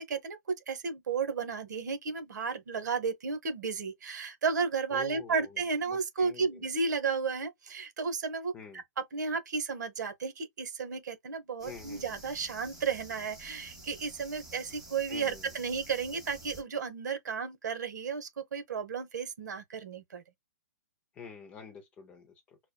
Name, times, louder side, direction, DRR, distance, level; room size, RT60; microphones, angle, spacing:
voice 1, 0.0-20.2, right 5 dB, 65° right, 1.1 m, -33 dB
voice 2, 4.9-5.6 5.9-6.7 8.5-8.8 11.6-12.2 15.1-15.5 21.1-22.6, left 6 dB, 10° left, 0.5 m, -47 dB
sound 1, 11.6-16.6, right 2 dB, 5° right, 1.0 m, -50 dB
6.3 x 2.2 x 2.3 m
hypercardioid pair, 170°, 10 cm